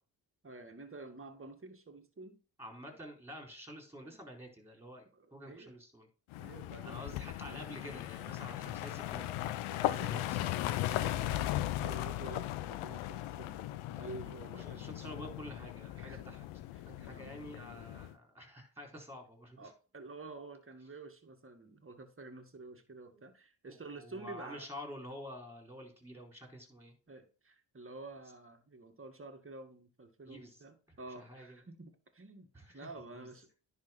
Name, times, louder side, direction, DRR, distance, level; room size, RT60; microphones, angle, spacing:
voice 1, 0.4-2.4 2.9-3.0 5.1-5.8 6.4-7.6 9.7-10.3 10.8-13.7 13.9-15.0 16.0-16.2 16.8-17.3 19.6-24.7 27.1-33.5, right 3 dB, 25° right, 2.0 m, -50 dB
voice 2, 2.6-6.1 6.8-9.3 9.9-10.4 14.6-19.7 23.1-23.2 23.7-26.9 30.3-31.6 32.5-32.9 33.1-33.3, equal, 5° right, 4.2 m, -49 dB
sound 1, 6.3-18.1, left 14 dB, 85° left, 0.7 m, -38 dB
10.5 x 3.7 x 5.9 m
supercardioid pair, 50°, 48 cm